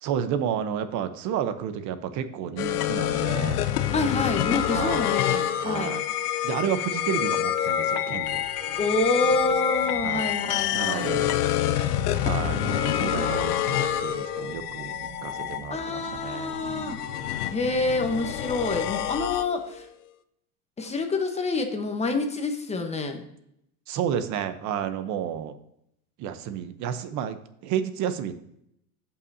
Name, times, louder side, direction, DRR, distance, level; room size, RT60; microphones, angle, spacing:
voice 1, 0.0-3.7 4.7-5.1 5.6-6.0 6.4-8.4 10.0-10.3 10.7-11.4 12.2-17.0 23.9-25.6 26.2-28.3, right 8 dB, 40° right, 10 dB, 0.9 m, -31 dB
sound 1, 2.6-19.8, left 11 dB, 90° left, 0.7 m, -27 dB
voice 2, 3.9-5.9 8.8-11.2 15.7-17.0 17.5-19.8 20.8-23.2, left 3 dB, 15° left, 5 dB, 1.1 m, -27 dB
sound 2, 8.1-18.0, right 5 dB, 75° right, 1.4 m, -45 dB
15.0 x 5.8 x 2.8 m, 0.75 s
supercardioid pair, 130°, 44 cm